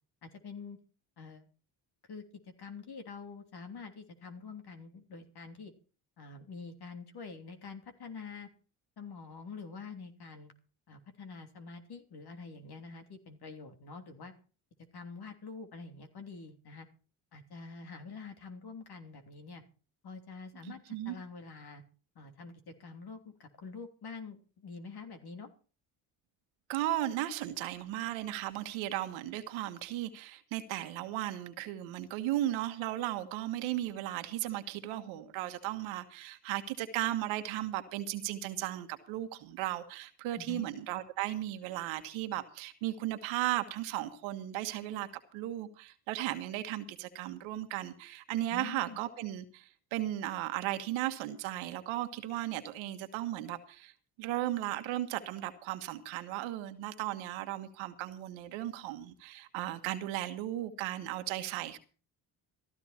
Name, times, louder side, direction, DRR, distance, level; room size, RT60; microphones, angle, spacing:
voice 1, 0.2-0.8 1.2-1.5 2.1-2.2 2.6-5.7 6.2-8.5 9.0-10.5 10.9-14.3 14.9-16.9 17.3-19.6 20.0-21.8 22.1-25.5 40.3-40.7 48.5-49.0, left 4 dB, 55° left, 3.2 m, -46 dB
voice 2, 20.7-21.2 26.7-53.9 54.2-61.8, right 14 dB, 80° right, 1.6 m, -36 dB
14.5 x 13.5 x 4.4 m
hypercardioid pair, 55°, 47 cm